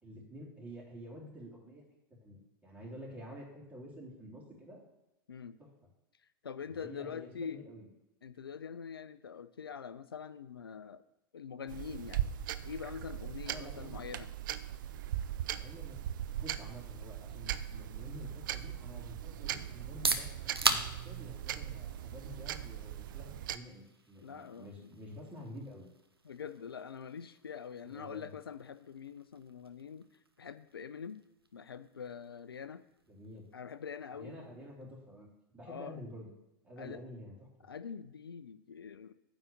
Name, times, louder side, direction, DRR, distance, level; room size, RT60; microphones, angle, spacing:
voice 1, 0.0-1.8 2.2-4.8 6.8-7.9 13.4-13.9 15.5-16.0 16.4-25.9 27.8-28.3 33.1-33.5 34.1-35.3 35.5-36.3 36.6-37.3, equal, 10° right, -4 dB, 3.2 m, -49 dB
voice 2, 6.4-7.6 8.2-11.0 11.3-12.3 12.6-14.3 24.2-24.9 26.2-30.1 30.4-31.2 31.5-32.8 33.5-34.4 35.6-36.0 36.8-37.0 37.6-39.1, left 7 dB, 80° left, 14 dB, 0.4 m, -44 dB
sound 1, 11.7-23.6, right 11 dB, 60° right, 0.5 m, -39 dB
sound 2, 19.8-35.4, right 3 dB, 90° right, 0.7 m, -41 dB
9.5 x 4.0 x 7.0 m, 0.91 s
figure-of-eight pair, 90°, 12 cm